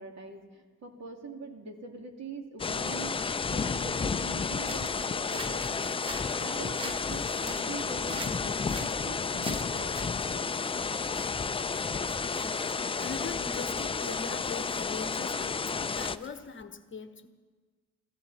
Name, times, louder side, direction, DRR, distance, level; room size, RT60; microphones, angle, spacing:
voice 1, 0.0-3.2 3.5-10.5, right 3 dB, 50° right, 2 dB, 2.7 m, -44 dB
sound 1, 2.6-16.2, left 5 dB, 15° left, 0.4 m, -31 dB
sound 2, 4.6-16.6, right 1 dB, 15° right, 1.3 m, -46 dB
voice 2, 12.3-17.3, left 5 dB, 35° left, 9 dB, 1.1 m, -41 dB
21.5 x 15.0 x 4.2 m, 1.4 s
cardioid pair, 90°, 34 cm